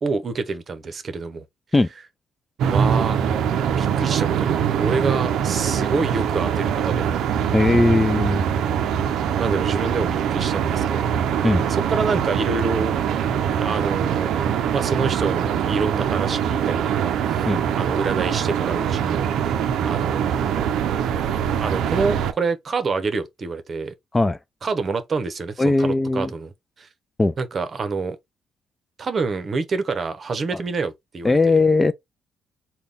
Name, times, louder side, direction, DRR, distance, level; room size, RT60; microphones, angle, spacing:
voice 1, 0.0-1.4 1.7-2.1 2.7-3.2 3.8-7.1 9.4-11.2 11.7-12.9 13.6-14.3 14.7-17.5 17.8-19.5 19.8-20.6 21.6-23.9 24.6-26.5 26.8-26.9 27.4-28.2 29.0-31.6, right 4 dB, 45° right, 0.8 m, -27 dB
sound 1, 2.6-22.3, right 8 dB, 80° right, 0.5 m, -23 dB
voice 2, 7.5-8.4 11.4-11.7 17.5-17.6 24.1-24.4 25.6-26.3 27.2-27.3 30.5-30.6 31.2-31.9, left 2 dB, 15° left, 0.4 m, -18 dB
3.9 x 2.2 x 3.4 m
cardioid pair, 90°, 0 cm